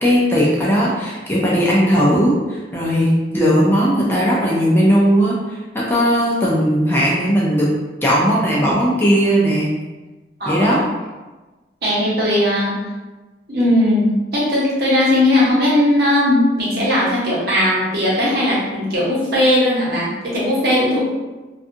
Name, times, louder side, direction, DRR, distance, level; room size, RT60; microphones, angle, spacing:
voice 1, 0.0-7.7 8.0-9.7 10.5-10.8, equal, 10° left, -6 dB, 0.4 m, -17 dB
voice 2, 10.4-10.8 11.8-12.8 13.5-21.0, left 1 dB, 60° right, -7 dB, 0.9 m, -18 dB
2.6 x 2.4 x 2.5 m, 1.2 s
head